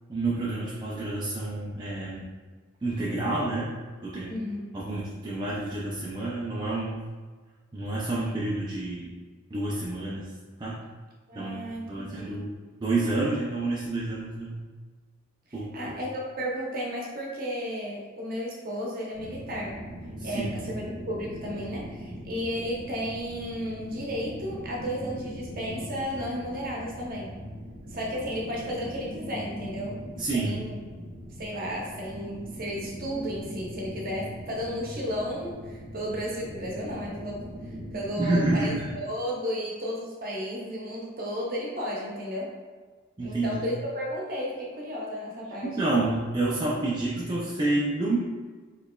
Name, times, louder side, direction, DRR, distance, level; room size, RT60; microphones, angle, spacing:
voice 1, 0.1-2.3 2.8-3.7 4.0-4.3 4.7-7.1 7.7-9.1 9.5-10.3 10.6-10.8 11.4-11.6 11.9-12.5 12.8-14.6 15.5-15.9 20.2-20.5 30.2-30.6 38.2-38.8 43.2-43.6 45.6-48.2, right 2 dB, 20° right, -7 dB, 0.4 m, -29 dB
voice 2, 11.3-12.4 15.7-19.8 20.2-27.4 27.9-30.0 30.3-30.8 31.4-42.5 43.2-45.8, equal, 45° right, -3 dB, 0.9 m, -33 dB
sound 1, 19.1-39.0, equal, 90° right, 1.3 m, -41 dB
4.3 x 3.1 x 2.3 m, 1.4 s
head